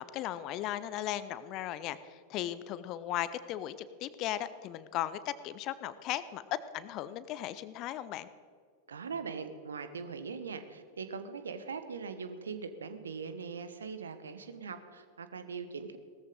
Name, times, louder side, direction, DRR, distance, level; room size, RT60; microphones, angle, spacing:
voice 1, 0.0-6.4 6.7-8.3, left 12 dB, 40° left, 15 dB, 0.7 m, -37 dB
voice 2, 8.9-16.0, right 5 dB, 70° right, 10 dB, 1.2 m, -41 dB
18.5 x 14.0 x 3.9 m, 2.2 s
figure-of-eight pair, 90°, 0 cm